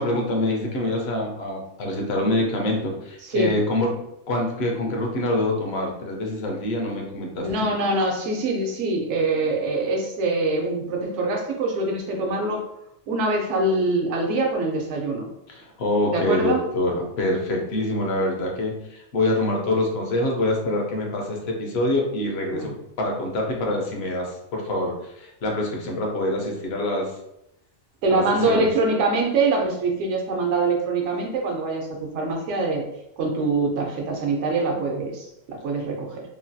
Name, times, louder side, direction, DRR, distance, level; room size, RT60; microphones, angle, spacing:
voice 1, 0.0-4.0 4.3-7.5 15.5-22.7 23.0-27.1 28.1-28.7, left 1 dB, 65° left, 0 dB, 0.9 m, -25 dB
voice 2, 3.2-3.5 7.4-12.6 13.1-15.3 16.1-16.6 22.5-22.7 28.0-32.9 33.2-36.2, right 2 dB, 75° right, 1 dB, 0.9 m, -24 dB
3.1 x 2.2 x 2.6 m, 0.82 s
omnidirectional pair, 1.2 m